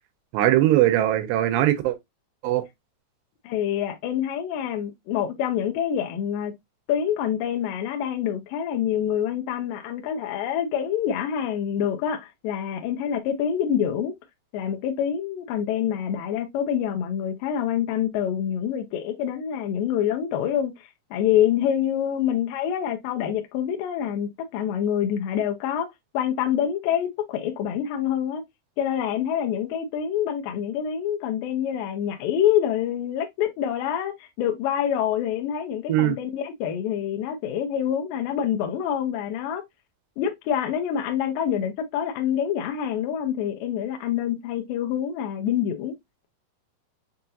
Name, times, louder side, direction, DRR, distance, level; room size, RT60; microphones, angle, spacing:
voice 1, 0.3-2.0 2.4-2.6 35.9-36.1, right 14 dB, 90° right, 2.8 m, -20 dB
voice 2, 3.4-6.5 6.9-14.1 14.5-28.4 28.8-39.6 40.2-46.0, left 9 dB, 80° left, 2.1 m, -26 dB
6.6 x 2.6 x 2.7 m
omnidirectional pair, 4.6 m